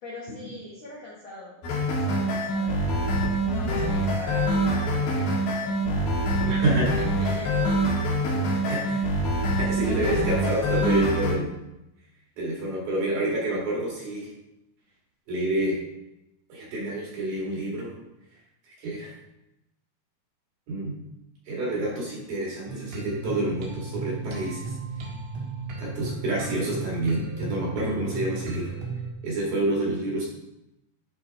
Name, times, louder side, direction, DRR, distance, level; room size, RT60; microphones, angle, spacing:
voice 1, 0.0-6.1 6.3-8.9, left 2 dB, 80° left, -6 dB, 1.4 m, -42 dB
sound 1, 1.6-11.3, right 1 dB, 65° left, 4.1 m, -25 dB
voice 2, 6.5-6.9 8.7-8.8 9.6-11.5 12.4-14.3 15.3-15.8 16.5-17.9 18.8-19.1 20.7-21.0 21.5-24.8 25.8-28.7 29.2-30.3, right 1 dB, 55° right, -5 dB, 3.0 m, -28 dB
sound 2, 22.7-29.1, right 4 dB, 70° right, 3.9 m, -35 dB
11.5 x 5.0 x 3.5 m, 0.90 s
omnidirectional pair, 5.7 m